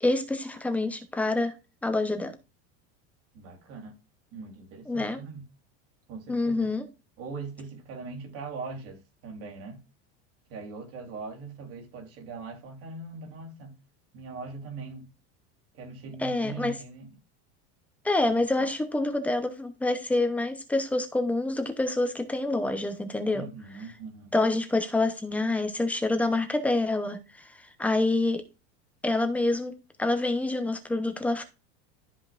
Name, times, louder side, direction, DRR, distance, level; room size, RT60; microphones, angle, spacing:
voice 1, 0.0-1.5 1.8-2.3 4.9-5.2 6.3-6.8 16.2-16.7 18.0-23.5 24.3-28.4 29.0-29.7 30.0-31.4, left 2 dB, 5° left, 0.7 m, -27 dB
voice 2, 3.3-4.0 4.3-5.4 6.1-6.7 7.2-9.8 10.5-13.8 14.1-15.1 15.7-17.1 18.2-18.7 23.3-24.4, right 4 dB, 45° right, 3.3 m, -41 dB
13.0 x 5.2 x 2.5 m
supercardioid pair, 170°, 31 cm